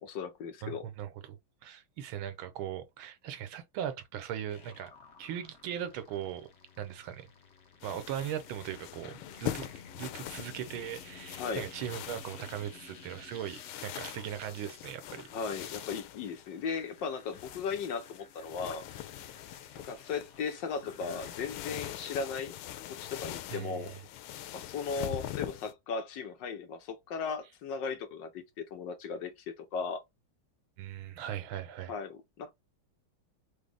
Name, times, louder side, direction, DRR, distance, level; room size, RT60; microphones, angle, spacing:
voice 1, 0.0-0.9 11.4-11.7 15.3-18.9 19.8-22.6 22.9-23.9 24.5-30.0 31.9-32.5, left 5 dB, 70° left, 1.4 m, -37 dB
voice 2, 0.6-1.4 1.6-4.9 5.2-6.5 6.8-7.3 7.8-9.7 10.0-15.3 15.5-15.8 23.5-23.9 30.8-31.9, right 10 dB, 85° right, 1.6 m, -39 dB
sound 1, 4.5-22.0, left 5 dB, 45° left, 1.1 m, -54 dB
sound 2, 7.8-25.7, left 13 dB, 85° left, 1.4 m, -43 dB
5.0 x 2.2 x 3.3 m
omnidirectional pair, 2.2 m